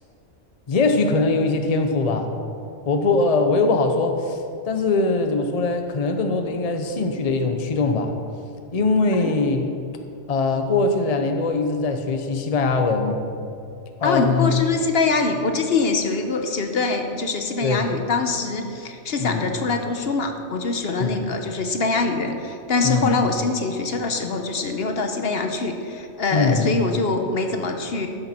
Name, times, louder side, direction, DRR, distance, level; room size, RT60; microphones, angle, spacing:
voice 1, 0.7-2.3 2.9-4.4 4.6-8.1 8.7-9.7 10.3-13.2 14.0-14.6 17.6-17.8 19.2-19.5 21.0-21.3 22.8-23.1 26.3-26.7, left 3 dB, 35° left, 5 dB, 0.8 m, -21 dB
voice 2, 14.0-28.1, left 3 dB, 60° left, 5 dB, 1.0 m, -24 dB
12.0 x 11.0 x 4.4 m, 2.5 s
omnidirectional pair, 1.2 m